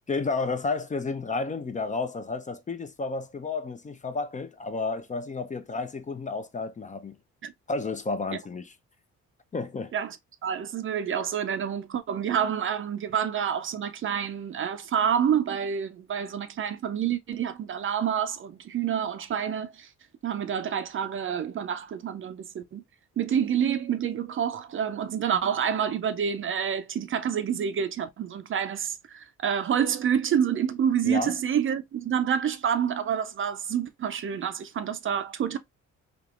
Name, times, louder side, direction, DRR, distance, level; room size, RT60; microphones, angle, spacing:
voice 1, 0.1-7.2 7.7-8.7 9.5-9.9 31.0-31.4, left 3 dB, 25° left, 0.4 m, -31 dB
voice 2, 10.4-19.9 20.2-22.8 23.2-35.6, right 8 dB, 45° right, 0.5 m, -28 dB
3.4 x 2.9 x 2.4 m
cardioid pair, 90°, 30 cm